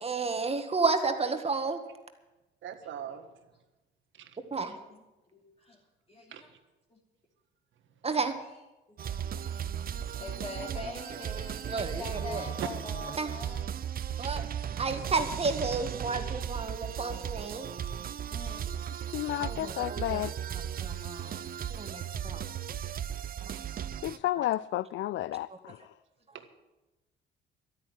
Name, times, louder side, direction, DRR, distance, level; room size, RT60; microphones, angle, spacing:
voice 1, 0.0-1.8 4.5-4.8 8.0-8.3 11.7-12.4 13.2-13.3 14.2-14.5 14.8-17.7 19.4-20.2 20.8-21.3 21.8-22.4, right 4 dB, 30° right, 8 dB, 1.8 m, -31 dB
voice 2, 2.6-3.3 4.2-4.8 6.3-6.4 12.6-12.7 21.3-21.5 23.5-23.8 26.3-26.5, right 9 dB, 75° right, 8 dB, 1.6 m, -41 dB
voice 3, 4.7-5.0 5.3-5.8 6.1-6.5 6.9-7.0 8.4-8.6 8.9-13.7 14.0-14.2 18.3-18.8 21.9-22.0 22.4-22.8, left 2 dB, 30° left, -3 dB, 3.0 m, -44 dB
sound 1, 9.0-24.2, right 9 dB, 50° right, 0.6 m, -36 dB
voice 4, 19.1-20.3 24.0-25.9, left 14 dB, 70° left, 18 dB, 0.4 m, -32 dB
12.5 x 9.2 x 9.3 m, 1.1 s
cardioid pair, 90°, 20 cm